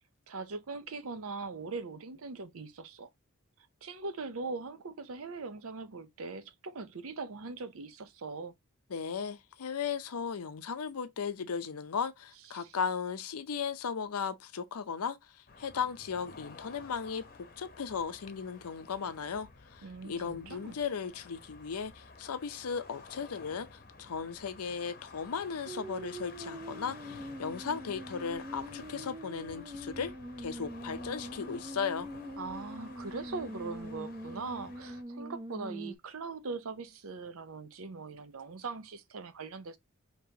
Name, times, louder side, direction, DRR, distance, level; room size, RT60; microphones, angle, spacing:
voice 1, 0.3-3.1 3.8-8.5 12.5-12.8 19.8-20.8 32.4-39.8, right 4 dB, 75° right, 0.6 m, -41 dB
voice 2, 8.9-30.1 30.4-32.1, left 6 dB, 90° left, 0.6 m, -36 dB
sound 1, 15.5-35.0, left 3 dB, 40° left, 0.8 m, -52 dB
sound 2, 25.7-36.0, equal, 20° right, 0.5 m, -43 dB
5.3 x 2.9 x 2.8 m
head